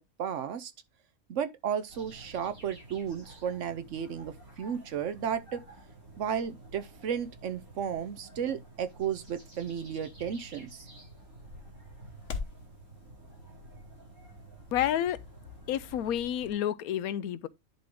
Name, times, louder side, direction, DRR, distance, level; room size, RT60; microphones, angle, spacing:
voice 1, 0.2-0.7 1.3-5.6 6.2-10.9, right 8 dB, 65° right, 1.0 m, -34 dB
sound 1, 1.9-16.5, right 1 dB, 80° right, 5.7 m, -51 dB
sound 2, 6.4-12.7, left 5 dB, 60° left, 1.4 m, -46 dB
voice 2, 14.7-15.2 15.7-17.5, left 11 dB, 80° left, 1.1 m, -29 dB
10.5 x 3.6 x 3.8 m
omnidirectional pair, 1.5 m